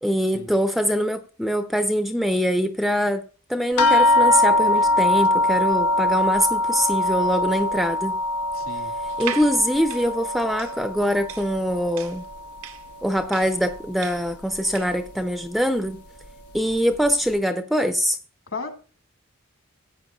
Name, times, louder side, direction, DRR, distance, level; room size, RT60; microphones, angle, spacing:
voice 1, 0.0-3.2 3.5-8.2 9.2-12.2 13.0-16.0 16.5-18.2, equal, ahead, 0.5 m, -23 dB
sound 1, 3.8-12.6 12.9-13.8 14.5-14.6 15.1-15.2, left 2 dB, 85° left, 0.8 m, -22 dB
voice 2, 8.5-8.9 18.5-18.7, left 3 dB, 60° left, 2.0 m, -34 dB
sound 2, 9.1-15.1, right 9 dB, 65° right, 0.7 m, -38 dB
16.0 x 8.7 x 2.3 m
head